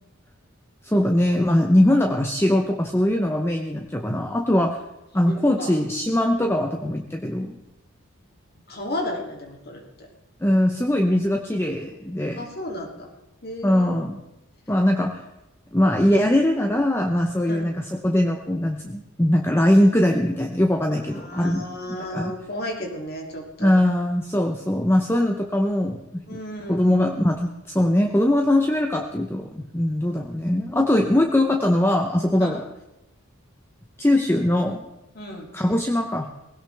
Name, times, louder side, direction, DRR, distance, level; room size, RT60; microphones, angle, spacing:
voice 1, 0.8-4.8 5.1-7.6 10.4-12.4 13.6-14.2 14.7-15.2 15.7-21.6 22.0-22.3 23.6-26.2 26.7-32.6 34.0-34.9 35.5-36.3, left 1 dB, 10° left, 3 dB, 0.8 m, -21 dB
voice 2, 5.3-5.7 8.7-10.1 12.4-13.1 13.4-14.0 17.4-17.7 21.1-23.7 26.3-27.0 32.4-32.6 35.1-35.5, left 1 dB, 45° left, 1 dB, 2.8 m, -33 dB
19.5 x 17.0 x 3.4 m, 0.96 s
head